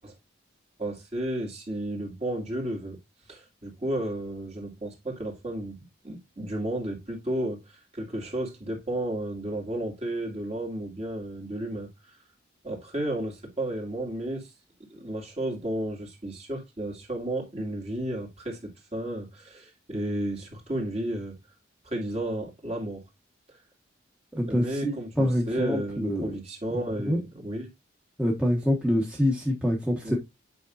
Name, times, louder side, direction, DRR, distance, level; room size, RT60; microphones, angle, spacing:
voice 1, 0.8-3.0 3.3-5.8 6.0-11.9 12.6-14.5 14.9-21.3 21.8-23.0 24.5-27.7 30.0-30.2, right 1 dB, 30° right, 2.3 m, -33 dB
voice 2, 24.3-26.3 26.7-27.2 28.2-30.2, equal, 5° right, 1.3 m, -26 dB
8.3 x 5.3 x 2.6 m
head